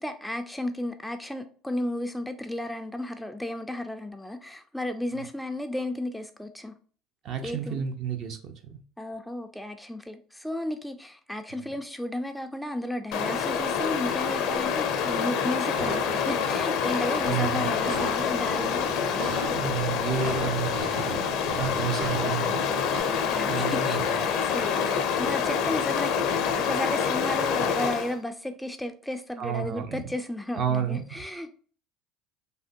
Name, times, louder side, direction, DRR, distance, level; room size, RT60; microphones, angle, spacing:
voice 1, 0.0-6.7 7.4-7.8 9.0-18.9 23.0-31.5, left 1 dB, 5° left, 7 dB, 0.3 m, -34 dB
voice 2, 7.2-8.8 11.5-11.7 17.3-17.7 19.5-21.1 21.6-22.6 23.5-24.2 29.4-30.1 30.5-31.0, right 8 dB, 55° right, 5 dB, 0.6 m, -31 dB
Stream, 13.1-28.2, left 7 dB, 65° left, 0.5 m, -27 dB
sound 1, 15.8-23.0, right 2 dB, 80° right, 1.0 m, -38 dB
3.3 x 2.2 x 2.6 m, 0.43 s
supercardioid pair, 90°, 0 cm